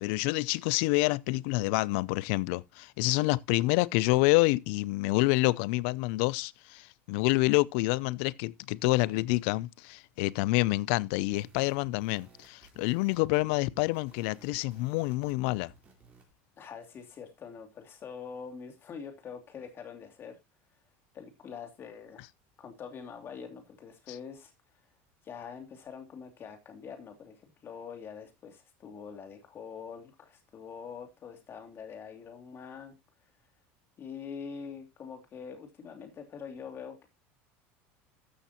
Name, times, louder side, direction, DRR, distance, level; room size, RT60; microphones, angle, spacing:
voice 1, 0.0-15.7, left 21 dB, 75° left, 0.5 m, -27 dB
sound 1, 11.2-16.3, right 4 dB, 25° right, 4.4 m, -59 dB
voice 2, 16.6-20.4 21.1-22.3 22.6-24.5 25.2-33.0 34.0-37.1, left 6 dB, 35° left, 2.8 m, -44 dB
13.5 x 6.6 x 2.8 m
supercardioid pair, 120°, 6 cm